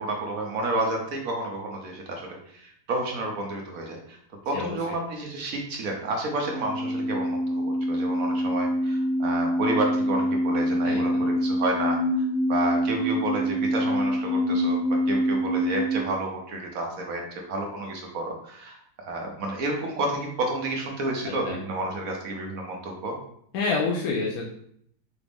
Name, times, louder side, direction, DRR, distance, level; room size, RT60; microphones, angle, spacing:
voice 1, 0.0-4.2 4.5-18.8 19.1-23.2, right 2 dB, 65° right, 1 dB, 1.1 m, -30 dB
sound 1, 6.4-16.0, equal, 90° left, 0.4 m, -25 dB
voice 2, 21.2-21.6 23.5-24.4, left 4 dB, 70° left, -2 dB, 1.1 m, -27 dB
5.0 x 2.5 x 3.4 m, 0.68 s
omnidirectional pair, 1.7 m